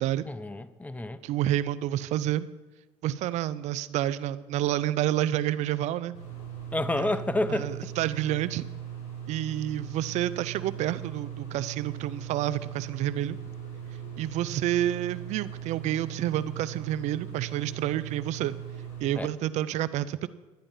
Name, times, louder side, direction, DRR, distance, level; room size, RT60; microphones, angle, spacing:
voice 1, 0.2-1.2 6.7-7.7 19.2-19.3, left 1 dB, 10° left, 15 dB, 0.7 m, -29 dB
voice 2, 1.2-2.5 3.0-6.2 7.0-7.1 7.5-8.7 9.3-13.4 14.2-18.5 19.0-20.3, right 12 dB, 70° right, 16 dB, 0.6 m, -29 dB
sound 1, 6.1-19.1, right 9 dB, 75° left, 4.2 m, -39 dB
11.5 x 10.0 x 5.5 m, 1.2 s
supercardioid pair, 80°, 12 cm